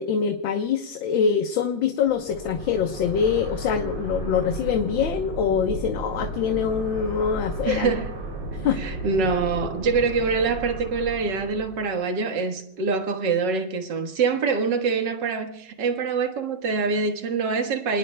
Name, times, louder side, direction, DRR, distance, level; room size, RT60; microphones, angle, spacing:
voice 1, 0.0-7.9 8.6-8.8, left 7 dB, 70° left, 1.7 m, -24 dB
sound 1, 2.1-11.9, right 2 dB, 75° right, 5.0 m, -34 dB
voice 2, 7.7-8.1 8.8-18.0, right 4 dB, 60° right, 2.0 m, -25 dB
30.0 x 19.5 x 2.2 m
omnidirectional pair, 2.3 m